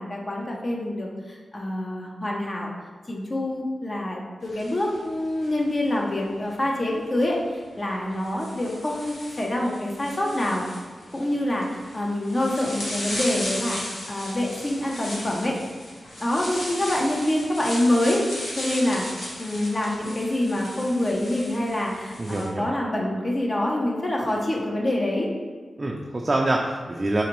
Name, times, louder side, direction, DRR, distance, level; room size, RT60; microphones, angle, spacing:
voice 1, 0.0-2.7 3.1-10.7 11.1-15.6 16.2-18.2 18.6-19.1 19.4-25.3, left 1 dB, 40° left, -1 dB, 0.6 m, -26 dB
sound 1, 4.4-5.9 7.2-7.3 8.1-22.5, left 1 dB, 85° left, 0.8 m, -36 dB
voice 2, 22.2-22.7 25.8-27.2, right 2 dB, 40° right, 0 dB, 0.3 m, -25 dB
3.9 x 2.6 x 2.9 m, 1.5 s
cardioid pair, 60°, 0 cm